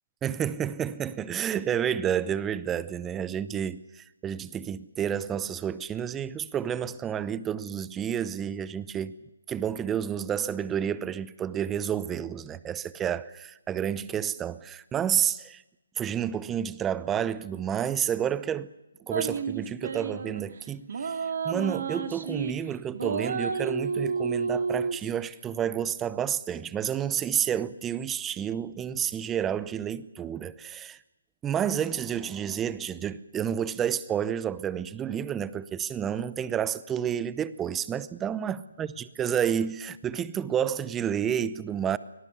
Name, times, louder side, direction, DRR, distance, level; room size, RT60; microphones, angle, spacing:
voice 1, 0.2-9.1 9.5-15.6 16.0-18.7 19.0-31.0 31.4-42.0, right 9 dB, 10° right, 0.8 m, -30 dB
sound 1, 19.1-20.4 20.9-22.5 22.9-25.0, right 5 dB, 60° right, 2.1 m, -30 dB
24.5 x 18.5 x 8.3 m
figure-of-eight pair, 150°, 0 cm